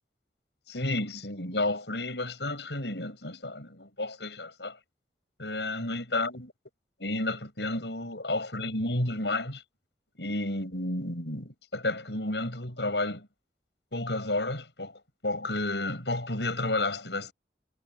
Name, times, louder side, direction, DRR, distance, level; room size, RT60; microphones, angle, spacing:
voice 1, 0.7-4.8 5.4-6.5 7.0-9.6 10.2-13.3 13.9-17.3, left 2 dB, 80° left, 7.6 m, -31 dB
head